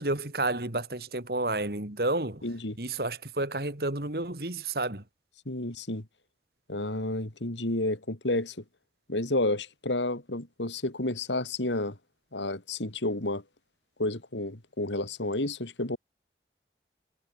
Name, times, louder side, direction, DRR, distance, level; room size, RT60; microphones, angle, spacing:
voice 1, 0.0-2.4 2.8-5.0, right 2 dB, 55° right, 2.6 m, -30 dB
voice 2, 2.4-2.8 5.4-6.0 6.7-8.5 9.1-12.0 12.3-13.4 14.0-16.0, left 2 dB, 85° left, 3.3 m, -30 dB
head